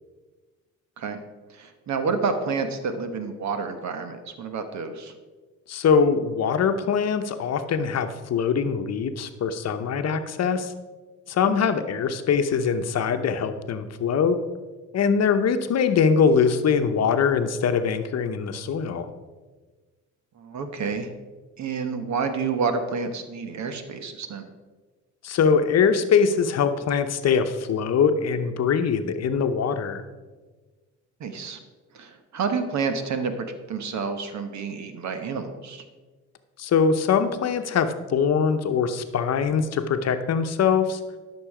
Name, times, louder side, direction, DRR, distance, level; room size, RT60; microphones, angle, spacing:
voice 1, 1.5-5.1 11.4-11.5 20.4-21.1 21.6-24.5 31.2-31.6 31.9-35.8, right 5 dB, 65° right, 8 dB, 1.3 m, -29 dB
voice 2, 5.7-10.7 11.3-14.4 14.9-19.1 25.2-30.0 36.6-41.0, left 6 dB, 55° left, 8 dB, 0.9 m, -22 dB
12.0 x 6.2 x 4.9 m, 1.3 s
cardioid pair, 90°, 30 cm